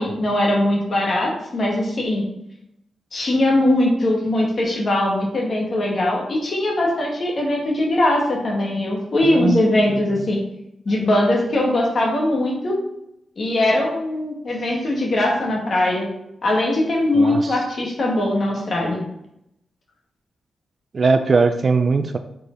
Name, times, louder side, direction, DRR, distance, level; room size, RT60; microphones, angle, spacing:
voice 1, 0.0-2.2 3.1-10.4 10.9-12.8 13.4-16.1 16.4-19.0, left 1 dB, 40° left, -2 dB, 1.7 m, -20 dB
voice 2, 17.2-17.6 20.9-22.2, right 4 dB, 35° right, 8 dB, 0.3 m, -19 dB
4.9 x 4.9 x 4.4 m, 0.80 s
wide cardioid pair, 175°, 0 cm